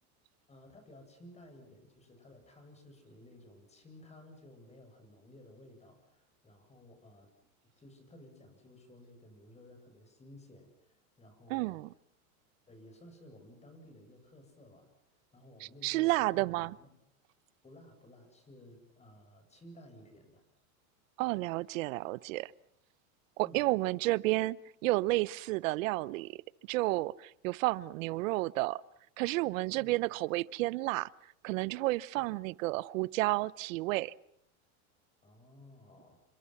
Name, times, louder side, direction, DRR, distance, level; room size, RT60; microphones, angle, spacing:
voice 1, 0.5-7.3 7.8-11.8 12.7-16.9 17.6-20.4 23.4-23.6 29.7-30.0 32.0-32.3 35.2-36.2, left 1 dB, 15° left, 7.9 m, -56 dB
voice 2, 11.5-11.9 15.8-16.7 21.2-22.5 23.4-24.6 24.8-26.3 26.7-28.8 29.2-31.1 31.4-34.1, right 20 dB, 65° right, 0.9 m, -31 dB
29.5 x 25.5 x 6.0 m
supercardioid pair, 135°, 43 cm